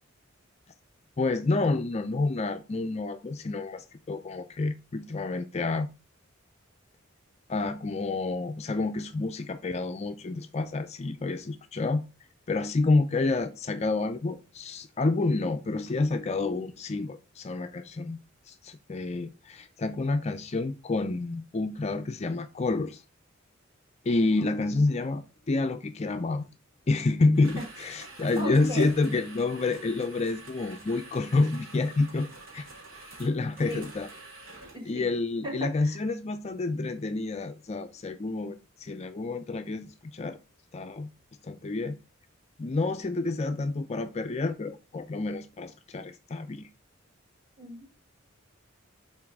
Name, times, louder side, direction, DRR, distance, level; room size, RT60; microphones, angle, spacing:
voice 1, 1.2-5.9 7.5-12.1 12.5-18.2 18.5-23.0 24.1-26.5 26.9-32.3 32.5-32.7 33.2-34.1 34.9-40.4 40.7-41.1 41.4-42.0 42.6-46.7, left 3 dB, 30° left, 0.4 m, -29 dB
sound 1, 27.3-34.9, right 2 dB, 85° right, 2.4 m, -47 dB
voice 2, 28.4-28.9 33.7-33.9 34.7-35.1 35.4-36.0 47.6-48.0, equal, 25° right, 2.0 m, -37 dB
6.2 x 4.1 x 4.5 m
head